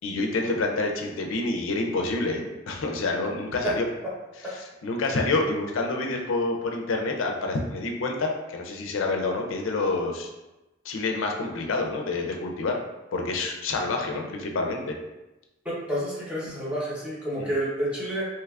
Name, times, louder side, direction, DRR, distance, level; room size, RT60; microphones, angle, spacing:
voice 1, 0.0-3.9 4.8-10.3 10.8-12.8 13.1-14.9 17.4-17.5, left 3 dB, 85° left, 2 dB, 0.4 m, -28 dB
voice 2, 15.9-18.2, right 1 dB, 5° right, -8 dB, 0.8 m, -29 dB
3.3 x 2.9 x 2.4 m, 1.0 s
head